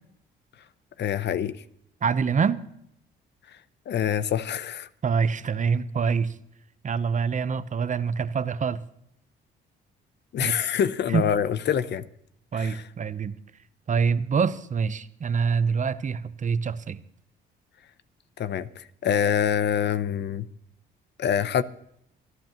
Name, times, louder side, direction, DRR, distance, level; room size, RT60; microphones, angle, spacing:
voice 1, 1.0-1.6 3.9-4.9 10.3-12.1 12.5-12.8 18.4-20.5 21.2-21.6, left 8 dB, 60° left, 0.8 m, -25 dB
voice 2, 2.0-2.6 5.0-6.3 6.8-8.8 10.4-10.5 11.1-11.3 12.5-13.3 13.9-17.0, right 6 dB, 40° right, 0.8 m, -25 dB
25.5 x 11.5 x 3.0 m
cardioid pair, 90°, 20 cm